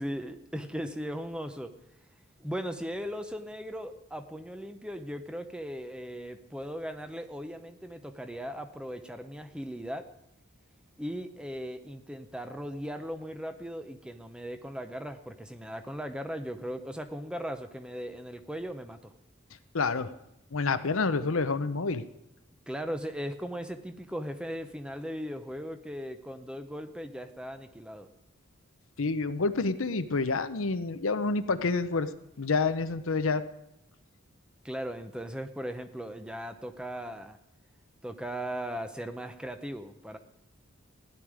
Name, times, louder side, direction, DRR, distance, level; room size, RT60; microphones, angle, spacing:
voice 1, 0.0-1.7 2.4-10.0 11.0-19.1 22.7-28.1 34.6-37.4 38.0-40.2, equal, 5° right, 8 dB, 0.6 m, -38 dB
voice 2, 19.7-20.1 20.5-22.0 29.0-32.1 32.4-33.4, left 4 dB, 70° left, 11 dB, 0.8 m, -28 dB
16.0 x 10.5 x 4.9 m, 0.85 s
head